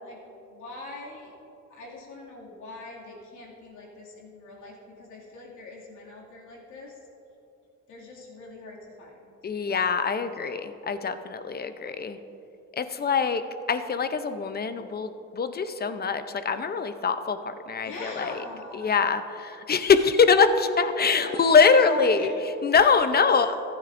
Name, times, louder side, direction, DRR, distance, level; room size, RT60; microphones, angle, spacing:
voice 1, 0.0-1.3 1.7-7.0 7.9-9.3 17.7-18.9 21.1-21.6 21.9-22.4 22.8-23.4, left 2 dB, 80° left, -3 dB, 2.5 m, -41 dB
voice 2, 9.4-12.2 12.7-13.4 13.7-18.4 18.7-23.6, left 5 dB, 30° left, 10 dB, 0.7 m, -23 dB
15.0 x 10.5 x 2.6 m, 2.9 s
cardioid pair, 90°, 30 cm